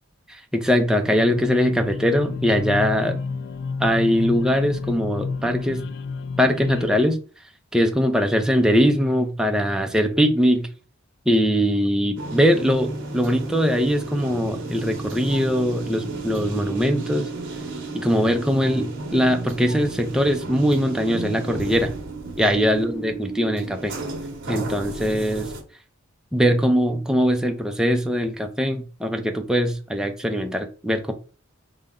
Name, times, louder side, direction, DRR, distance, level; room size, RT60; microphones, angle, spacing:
voice 1, 0.3-3.2 3.8-5.8 6.4-7.2 7.7-10.7 11.3-17.3 17.9-21.9 22.4-23.9 24.5-25.5 26.3-31.1, equal, 5° right, 4 dB, 0.4 m, -21 dB
sound 1, 1.0-7.0, left 4 dB, 55° left, 0.3 m, -30 dB
sound 2, 12.2-25.6, right 3 dB, 60° right, 0.9 m, -33 dB
5.1 x 2.1 x 3.6 m, 0.36 s
head